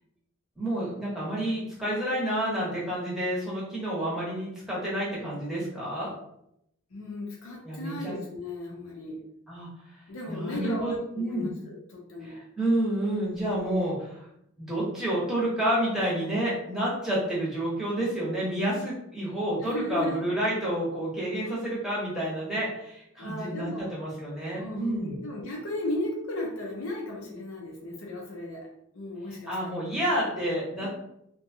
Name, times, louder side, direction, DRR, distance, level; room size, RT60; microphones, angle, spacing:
voice 1, 0.6-6.1 7.6-8.2 9.5-9.7 10.3-11.5 12.2-14.0 14.6-25.2 29.5-30.9, right 1 dB, ahead, -7 dB, 0.8 m, -29 dB
voice 2, 6.9-9.2 10.1-12.4 13.6-13.8 19.6-20.2 23.2-23.9 24.5-28.7 28.9-29.8 30.8-30.9, left 1 dB, 80° left, -2 dB, 0.6 m, -35 dB
2.6 x 2.2 x 2.6 m, 0.77 s
head